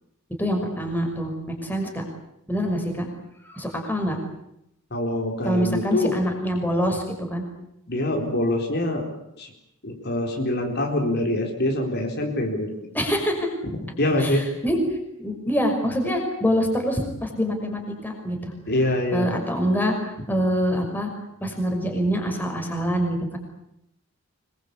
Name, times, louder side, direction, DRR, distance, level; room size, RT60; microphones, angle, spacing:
voice 1, 0.4-2.0 2.5-3.1 3.4-4.2 5.4-7.0 7.3-7.4 12.9-13.5 14.2-14.8 15.2-18.5 19.1-21.1 21.4-23.4, equal, 10° left, 3 dB, 5.8 m, -25 dB
voice 2, 4.9-6.2 7.9-9.1 9.4-9.5 9.8-12.7 13.6-13.7 14.0-14.5 18.7-19.3, left 1 dB, 50° left, 2 dB, 4.3 m, -24 dB
25.5 x 22.5 x 8.6 m, 0.80 s
head